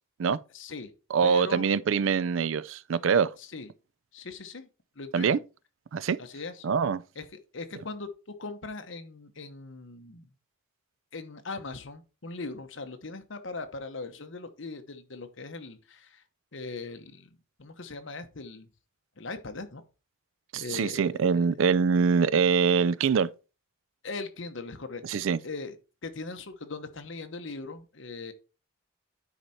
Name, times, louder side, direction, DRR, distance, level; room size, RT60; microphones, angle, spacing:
voice 1, 0.5-0.9 1.2-1.7 3.4-3.7 4.1-4.7 5.0-5.4 6.2-6.7 7.2-7.3 7.5-8.1 8.4-10.3 11.1-16.2 16.5-18.7 19.2-19.8 20.6-21.5 24.0-25.0 25.4-25.7 26.0-28.3, left 3 dB, 60° left, 1.0 m, -39 dB
voice 2, 1.1-3.3 5.1-5.4 5.9-6.2 6.6-7.0 20.5-23.3 25.0-25.4, right 6 dB, 65° right, 0.4 m, -24 dB
9.9 x 4.4 x 4.2 m
head